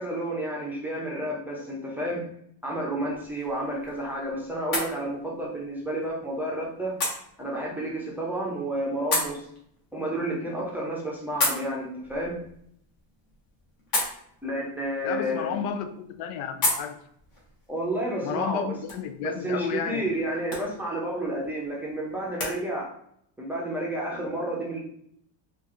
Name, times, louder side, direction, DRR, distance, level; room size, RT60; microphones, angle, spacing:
voice 1, 0.0-2.2 2.6-7.0 7.4-9.5 9.9-12.4 14.4-15.6 17.7-18.6 19.2-22.9 23.4-24.8, right 1 dB, 5° right, -4 dB, 0.5 m, -30 dB
sound 1, 3.1-22.6, left 2 dB, 45° left, 1.3 m, -36 dB
voice 2, 15.0-17.0 18.2-20.1, left 8 dB, 85° left, 8 dB, 0.6 m, -32 dB
4.5 x 2.5 x 2.4 m, 0.69 s
cardioid pair, 150°, 46 cm